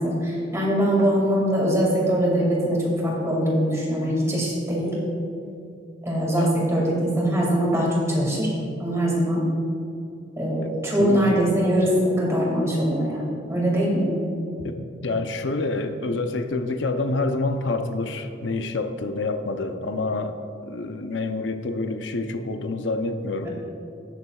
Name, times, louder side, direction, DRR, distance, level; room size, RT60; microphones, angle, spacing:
voice 1, 0.0-5.0 6.0-8.5 8.8-9.4 10.4-14.1 23.4-23.5, equal, 15° right, -4 dB, 2.3 m, -22 dB
voice 2, 11.0-11.5 14.6-20.4 20.7-23.5, left 2 dB, 75° left, 7 dB, 0.6 m, -27 dB
18.5 x 7.0 x 2.4 m, 2.6 s
head